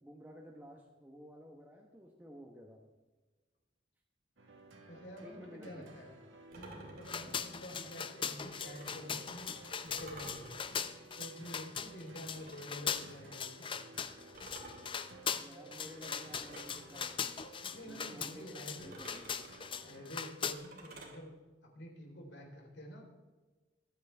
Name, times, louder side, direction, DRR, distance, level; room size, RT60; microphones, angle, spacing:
voice 1, 0.0-2.8 5.2-6.1 15.3-17.4 17.8-18.5 18.8-19.3, equal, 10° right, 0 dB, 1.1 m, -53 dB
sound 1, 4.4-20.2, right 2 dB, 90° right, 1.6 m, -56 dB
voice 2, 4.9-6.1 6.5-9.5 9.8-10.6 11.2-13.8 17.7-19.2 19.8-21.3 21.6-23.1, equal, 75° left, 0 dB, 3.9 m, -49 dB
sound 2, 6.5-9.1 9.8-12.8 14.3-16.8 18.8-21.2, right 2 dB, 50° right, 2.8 m, -53 dB
sound 3, 7.0-20.5, left 7 dB, 25° left, 0.6 m, -40 dB
21.5 x 9.2 x 3.5 m, 1.3 s
head